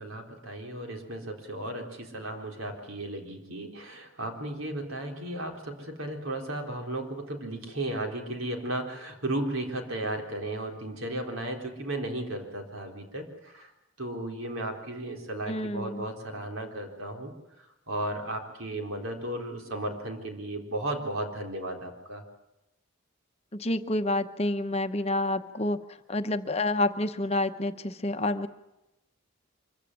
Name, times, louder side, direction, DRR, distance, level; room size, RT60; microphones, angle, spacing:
voice 1, 0.0-13.7 14.0-17.3 17.9-22.2, right 1 dB, 75° right, 3 dB, 4.1 m, -35 dB
voice 2, 15.4-16.1 23.5-25.8 26.1-28.5, left 1 dB, 30° left, 9 dB, 0.9 m, -28 dB
24.5 x 15.5 x 9.9 m, 0.92 s
head